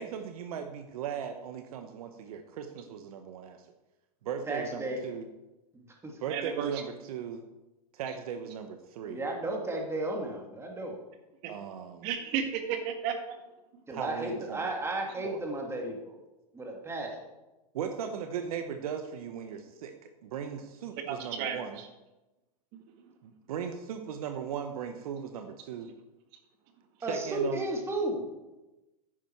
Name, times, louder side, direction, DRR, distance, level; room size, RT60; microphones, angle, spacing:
voice 1, 0.0-3.7 4.2-5.3 6.2-7.4 7.9-9.2 11.5-12.1 13.9-14.6 15.2-15.4 17.7-21.8 23.2-25.9 27.1-27.6, right 7 dB, 65° right, 7 dB, 1.0 m, -38 dB
voice 2, 4.5-5.0 5.7-6.2 9.0-11.0 13.9-16.2 16.5-17.2 27.0-28.3, right 2 dB, 15° right, 1 dB, 2.3 m, -34 dB
voice 3, 6.3-6.7 11.4-11.5 12.0-13.4 21.1-21.6, right 8 dB, 45° right, 5 dB, 1.8 m, -32 dB
10.0 x 9.4 x 4.6 m, 1.0 s
hypercardioid pair, 115°, 20 cm